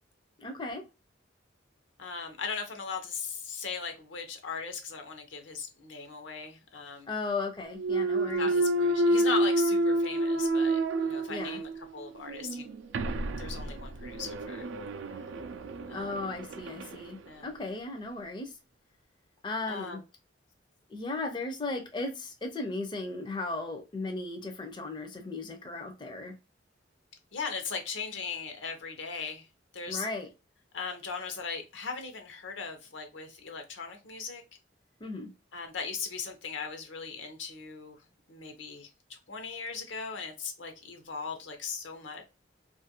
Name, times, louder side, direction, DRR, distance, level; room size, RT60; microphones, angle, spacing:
voice 1, 0.4-0.8 7.1-8.5 11.3-11.6 15.9-18.5 19.4-20.0 20.9-26.3 29.9-30.3 35.0-35.3, left 3 dB, 25° left, 0.4 m, -36 dB
voice 2, 2.0-7.1 8.4-12.7 13.4-14.7 15.9-16.2 17.3-17.5 19.7-20.0 27.3-29.5 29.7-30.1 30.7-34.4 35.5-38.0 38.3-42.3, left 5 dB, 80° left, 0.7 m, -38 dB
Thump thud, 7.8-11.8 12.3-16.9, right 1 dB, 80° right, 0.4 m, -29 dB
2.5 x 2.4 x 2.7 m
head